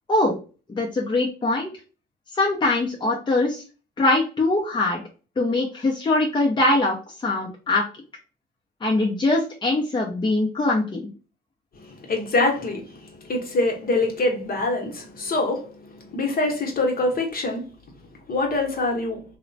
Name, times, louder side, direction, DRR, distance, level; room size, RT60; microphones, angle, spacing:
voice 1, 0.7-1.7 2.3-3.6 4.0-5.0 5.4-7.0 7.2-7.8 8.8-11.1, left 2 dB, 25° left, 0.6 m, -22 dB
voice 2, 11.8-17.6 18.3-19.2, left 2 dB, 50° left, 1.0 m, -25 dB
2.9 x 2.1 x 2.6 m
cardioid pair, 90°, 20 cm